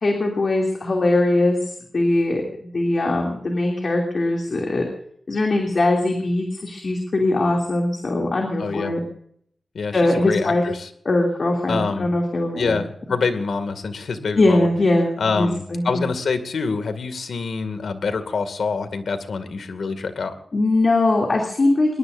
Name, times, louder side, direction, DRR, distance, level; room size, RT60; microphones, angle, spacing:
voice 1, 0.0-4.9 5.3-9.0 9.9-10.6 11.0-12.8 14.4-16.0 20.5-22.0, left 2 dB, 45° left, 1 dB, 2.8 m, -21 dB
voice 2, 8.6-8.9 9.7-10.9 11.7-12.1 12.6-14.7 15.2-20.3, left 4 dB, 85° left, 9 dB, 2.2 m, -26 dB
22.5 x 21.5 x 2.6 m, 0.66 s
wide cardioid pair, 150°, 0 cm